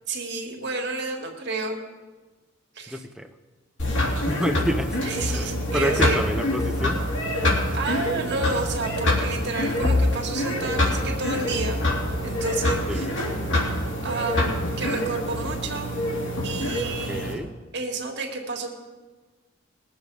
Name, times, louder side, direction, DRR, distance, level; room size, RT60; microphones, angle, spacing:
voice 1, 0.1-1.8 2.8-3.0 5.0-6.2 7.7-11.9 12.2-13.1 14.0-16.0 16.4-17.4 17.7-18.7, right 3 dB, 60° right, 2 dB, 2.0 m, -30 dB
voice 2, 2.9-3.3 4.2-5.0 5.3-7.1 12.9-13.2 17.1-17.5, equal, 5° right, 7 dB, 0.7 m, -29 dB
sound 1, 3.8-17.3, left 1 dB, 70° left, 2.9 m, -25 dB
21.0 x 7.3 x 4.8 m, 1.3 s
head